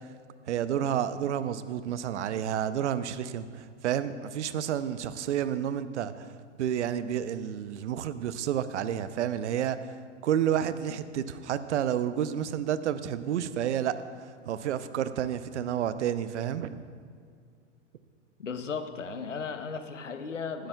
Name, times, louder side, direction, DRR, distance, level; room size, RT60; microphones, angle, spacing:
voice 1, 0.5-6.3 6.6-9.9 10.2-16.8, right 9 dB, 70° right, 13 dB, 0.7 m, -30 dB
voice 2, 18.4-20.7, left 5 dB, 90° left, 8 dB, 0.9 m, -35 dB
19.0 x 12.5 x 2.3 m, 2.1 s
hypercardioid pair, 95°, 36 cm